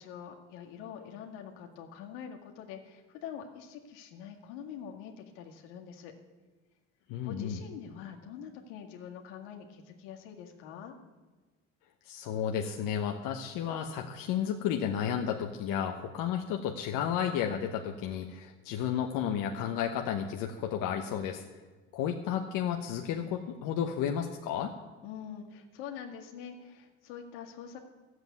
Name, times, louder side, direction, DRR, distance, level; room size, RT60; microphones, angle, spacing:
voice 1, 0.0-6.1 7.2-11.0 25.0-27.8, left 8 dB, 90° left, 1 dB, 2.0 m, -45 dB
voice 2, 7.1-7.6 12.0-21.4 21.9-24.7, left 9 dB, 70° left, 3 dB, 1.1 m, -32 dB
13.0 x 7.9 x 9.4 m, 1.3 s
supercardioid pair, 95°, 34 cm